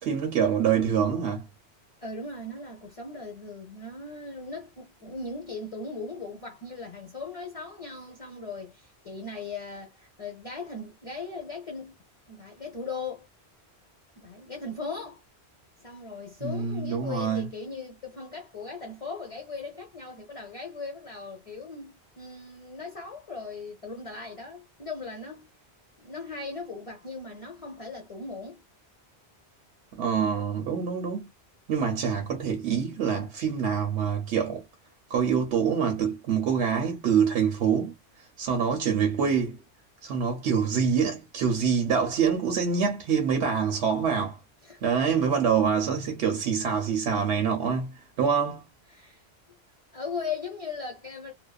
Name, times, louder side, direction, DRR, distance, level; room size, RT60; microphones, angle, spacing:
voice 1, 0.0-1.4 16.4-17.5 29.9-31.3 31.7-34.6 35.1-39.6 40.0-44.4 44.8-48.7, right 7 dB, 85° right, 0.9 m, -26 dB
voice 2, 2.0-12.0 12.3-13.3 14.2-15.2 15.8-25.5 26.0-28.6 44.6-45.1 48.9-49.6 49.9-51.3, left 4 dB, 40° left, 0.6 m, -38 dB
2.5 x 2.2 x 2.2 m
omnidirectional pair, 1.1 m